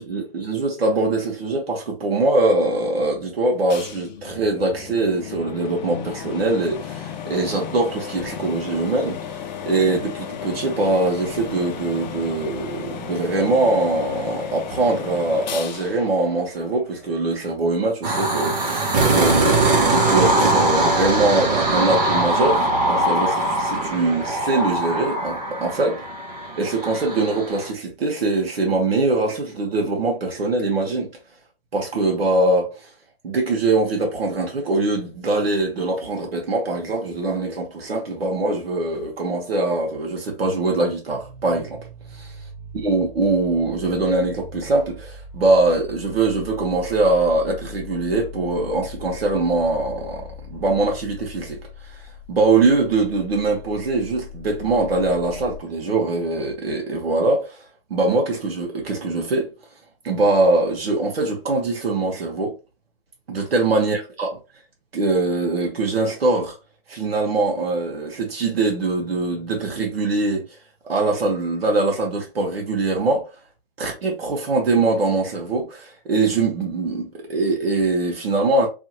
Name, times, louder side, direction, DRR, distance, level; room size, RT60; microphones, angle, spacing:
voice 1, 0.0-9.4 9.7-25.9 26.6-31.1 31.7-32.9 33.2-41.8 42.1-42.4 42.8-52.0 52.3-57.6 57.9-59.5 60.0-62.5 63.3-64.3 64.9-66.5 66.9-70.5 70.8-73.3 73.8-78.7, right 2 dB, 85° right, 1.1 m, -22 dB
sound 1, 3.7-17.2, left 8 dB, 50° left, 0.5 m, -34 dB
sound 2, 18.0-27.7, right 2 dB, 45° right, 1.0 m, -21 dB
sound 3, 41.1-55.6, left 5 dB, 15° right, 1.0 m, -40 dB
2.9 x 2.7 x 2.7 m
hypercardioid pair, 145°, 29 cm